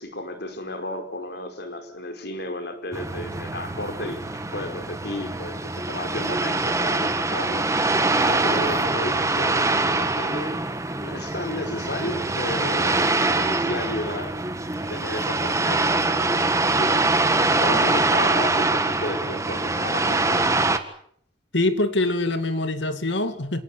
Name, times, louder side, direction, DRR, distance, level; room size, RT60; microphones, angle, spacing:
voice 1, 0.0-4.2 4.5-7.7 8.3-10.5 11.0-14.3 14.9-17.0 17.6-20.6, left 1 dB, 65° left, 7 dB, 4.7 m, -33 dB
sound 1, 2.9-20.8, right 2 dB, 15° right, 1.7 m, -24 dB
voice 2, 21.5-23.6, left 2 dB, 80° left, 10 dB, 2.5 m, -24 dB
27.0 x 18.5 x 8.2 m, 0.65 s
head